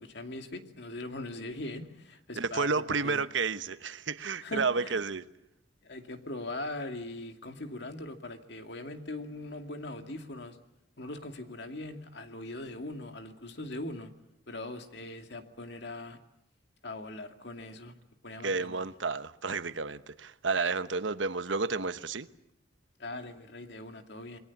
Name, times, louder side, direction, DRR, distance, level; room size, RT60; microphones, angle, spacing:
voice 1, 0.0-3.2 4.4-5.0 5.8-10.6 11.0-14.1 14.5-16.2 16.8-17.9 18.2-18.8 23.0-24.4, left 2 dB, 60° left, 2.5 m, -41 dB
voice 2, 2.4-5.2 18.4-22.3, right 4 dB, 80° right, 1.1 m, -31 dB
28.0 x 21.5 x 7.2 m
head